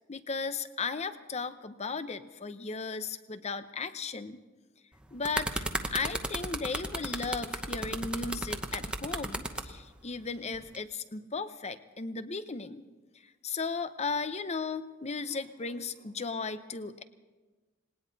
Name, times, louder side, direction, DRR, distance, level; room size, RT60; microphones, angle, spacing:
voice 1, 0.1-4.4 5.1-12.8 13.4-17.0, left 4 dB, 35° left, 12 dB, 0.7 m, -36 dB
sound 1, 4.9-9.7 10.5-10.8, right 1 dB, 5° right, 0.9 m, -34 dB
19.0 x 18.5 x 4.0 m, 1.3 s
head